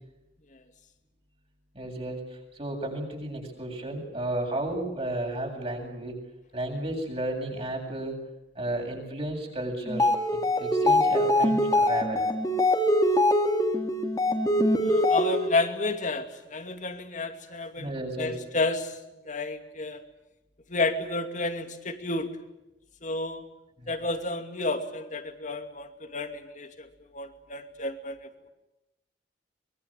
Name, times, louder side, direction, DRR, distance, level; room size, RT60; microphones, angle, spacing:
voice 1, 1.7-6.2 6.5-8.2 8.5-12.2 17.8-18.4 23.8-23.9, right 1 dB, 35° right, 1 dB, 7.9 m, -33 dB
sound 1, 9.9-15.6, left 1 dB, 20° left, 2.9 m, -23 dB
voice 2, 14.8-17.9 18.2-19.0 19.2-20.0 20.7-22.3 23.0-23.5 23.9-26.9 27.1-28.5, left 2 dB, 45° left, 7 dB, 2.5 m, -31 dB
24.5 x 22.5 x 8.9 m, 0.94 s
head